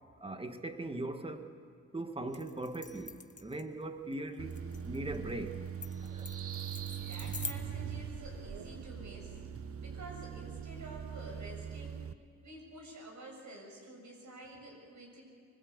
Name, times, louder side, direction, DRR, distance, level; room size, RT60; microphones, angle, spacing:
voice 1, 0.2-1.5 1.9-5.6 6.0-6.3, right 2 dB, 20° right, 1.8 m, -40 dB
sound 1, 2.3-7.5, left 4 dB, 25° left, 1.4 m, -46 dB
sound 2, 4.4-12.1, right 8 dB, 45° right, 0.8 m, -42 dB
sound 3, 6.0-8.8, right 5 dB, 85° right, 1.6 m, -45 dB
voice 2, 6.8-9.4 9.8-12.1 12.4-15.2, right 1 dB, 65° right, 7.0 m, -49 dB
25.0 x 21.0 x 8.1 m
cardioid pair, 90°, 31 cm